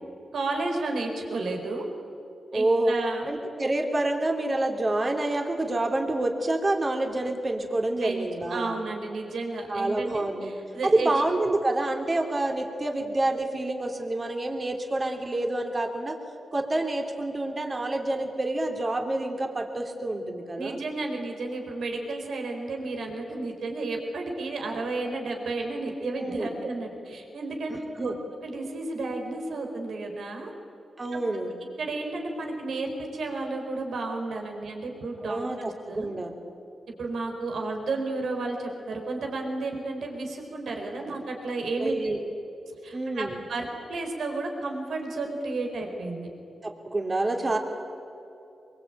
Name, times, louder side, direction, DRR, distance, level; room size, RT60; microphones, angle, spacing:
voice 1, 0.3-1.8 2.5-3.3 8.0-11.1 20.6-28.1 28.4-30.5 31.1-31.2 31.8-36.1 37.0-42.2 42.8-46.3, right 3 dB, 80° right, 3 dB, 4.6 m, -32 dB
voice 2, 2.5-3.0 3.2-8.8 9.7-10.5 10.8-16.2 16.5-20.8 26.2-26.5 27.7-28.2 31.0-31.5 35.2-36.3 41.8-42.2 42.9-43.4 46.6-47.6, right 2 dB, 35° right, 3 dB, 3.4 m, -27 dB
24.0 x 23.5 x 9.0 m, 2.8 s
cardioid pair, 75°, 0 cm